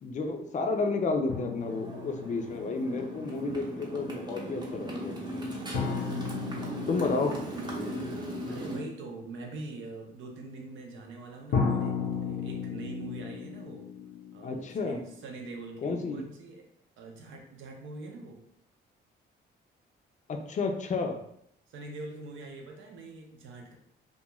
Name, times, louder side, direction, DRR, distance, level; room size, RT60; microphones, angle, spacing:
voice 1, 0.0-5.2 6.9-7.4 14.4-15.0 15.8-16.2 20.3-21.2, left 3 dB, 40° left, 4 dB, 0.4 m, -31 dB
sound 1, 1.3-3.1 5.7-8.6 11.5-15.3, left 5 dB, 90° left, 0.7 m, -35 dB
Motorcycle, 1.6-8.8, right 1 dB, 20° right, 0.6 m, -37 dB
voice 2, 5.9-6.7 8.5-13.9 14.3-16.7 17.0-18.4 21.7-23.8, right 3 dB, 75° right, 2 dB, 0.6 m, -43 dB
2.3 x 2.2 x 2.9 m, 0.73 s
cardioid pair, 90°, 20 cm